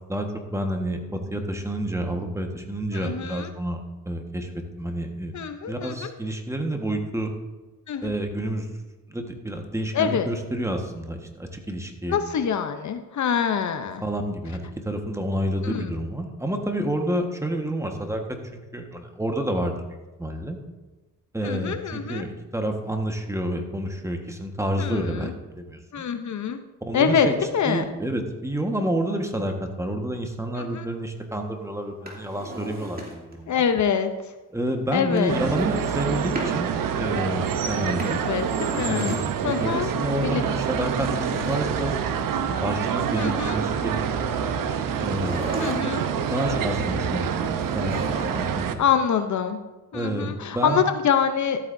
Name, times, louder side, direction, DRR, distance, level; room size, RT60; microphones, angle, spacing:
voice 1, 0.1-3.8 4.0-4.5 4.8-5.3 5.7-7.3 8.0-8.7 9.1-12.2 14.0-18.2 18.5-20.6 21.3-26.0 26.8-27.3 27.6-33.6 34.5-36.7 37.0-38.2 38.9-41.9 42.5-44.1 45.0-45.6 46.2-48.8 49.9-50.8, right 1 dB, 10° right, 3 dB, 1.4 m, -29 dB
voice 2, 2.9-3.5 5.3-6.2 7.9-8.1 9.9-10.3 12.1-14.0 15.6-15.9 21.4-22.2 24.8-25.3 25.9-26.6 26.9-27.8 30.6-30.9 33.5-34.1 34.9-35.4 38.2-39.9 40.2-40.4 41.1-41.5 43.2-43.6 45.6-46.1 48.8-49.6 49.9-51.6, left 7 dB, 55° left, 8 dB, 0.7 m, -25 dB
Drawer open or close, 31.9-33.4 35.1-36.6 37.7-39.5 40.8-42.4 44.9-46.1 47.6-48.7 48.9-49.0, right 1 dB, 25° right, 2.5 m, -37 dB
sound 1, 35.3-48.8, right 7 dB, 75° right, 0.8 m, -27 dB
13.5 x 8.3 x 2.6 m, 1.1 s
cardioid pair, 80°, 34 cm